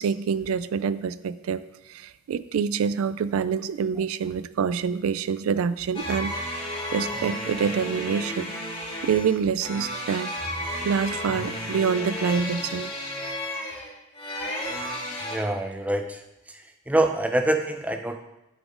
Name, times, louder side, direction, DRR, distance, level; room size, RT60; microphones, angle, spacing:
voice 1, 0.0-1.6 1.9-6.7 6.9-8.5 9.0-10.3 10.8-12.9, right 6 dB, 80° right, 15 dB, 0.3 m, -26 dB
sound 1, 5.9-15.4, left 1 dB, 25° left, 1.5 m, -32 dB
voice 2, 15.2-16.2 16.5-18.2, right 1 dB, 5° right, 5 dB, 0.5 m, -25 dB
7.9 x 4.1 x 5.0 m, 0.95 s
head